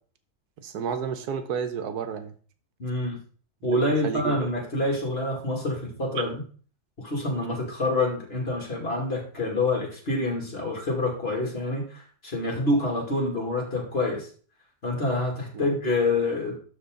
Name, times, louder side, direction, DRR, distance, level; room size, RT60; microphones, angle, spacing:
voice 1, 0.6-2.3 3.6-4.4 15.5-15.7, right 7 dB, 80° right, 9 dB, 1.4 m, -31 dB
voice 2, 2.8-3.2 3.6-6.3 7.0-14.3 14.8-16.6, left 2 dB, 40° left, 0 dB, 2.6 m, -27 dB
12.5 x 4.3 x 3.8 m, 0.43 s
omnidirectional pair, 1.6 m